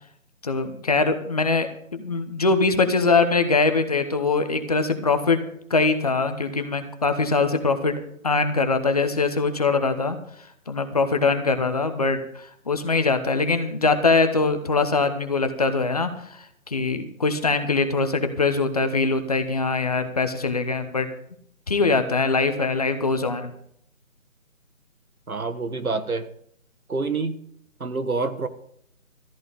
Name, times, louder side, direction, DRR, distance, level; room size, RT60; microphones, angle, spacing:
voice 1, 0.4-5.4 5.7-7.9 8.2-10.2 10.7-21.1 21.7-23.5, left 3 dB, 30° left, 8 dB, 0.9 m, -22 dB
voice 2, 25.3-26.3 26.9-27.4 27.8-28.5, right 3 dB, 85° right, 11 dB, 1.5 m, -27 dB
14.0 x 10.5 x 5.1 m, 0.68 s
figure-of-eight pair, 155°, 42 cm